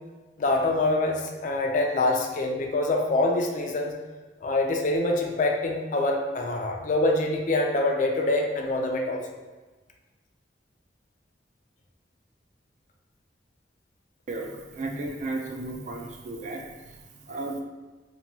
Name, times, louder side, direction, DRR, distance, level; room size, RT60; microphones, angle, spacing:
voice 1, 0.4-3.9 4.4-9.2, left 2 dB, 45° left, 1 dB, 0.3 m, -25 dB
voice 2, 14.3-16.6 17.3-17.6, right 2 dB, 40° right, 1 dB, 0.3 m, -34 dB
2.9 x 2.2 x 2.7 m, 1.2 s
head